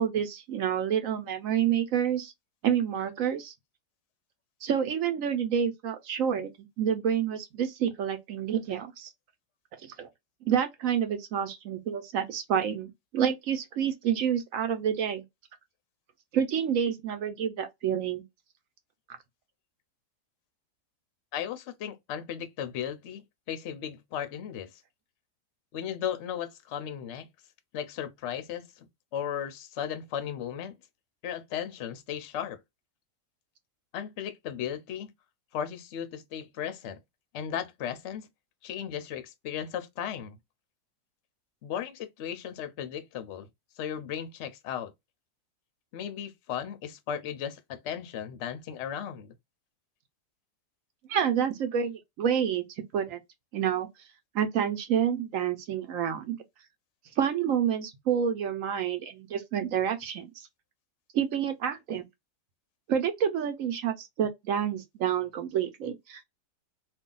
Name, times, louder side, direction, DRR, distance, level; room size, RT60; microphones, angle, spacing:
voice 1, 0.0-2.3 2.6-3.5 4.6-9.1 9.8-10.1 10.5-15.2 16.3-18.2 51.1-53.2 53.5-53.9 54.3-56.4 57.2-60.5 61.1-62.0 62.9-66.2, right 8 dB, 65° right, 0.9 m, -28 dB
voice 2, 21.3-24.8 25.7-27.3 27.7-28.9 29.1-30.7 31.2-32.6 33.9-35.1 35.5-37.0 37.3-38.3 38.6-40.4 41.6-43.5 43.8-44.9 45.9-49.3, left 9 dB, 60° left, 0.7 m, -36 dB
2.7 x 2.3 x 3.7 m
omnidirectional pair, 1.7 m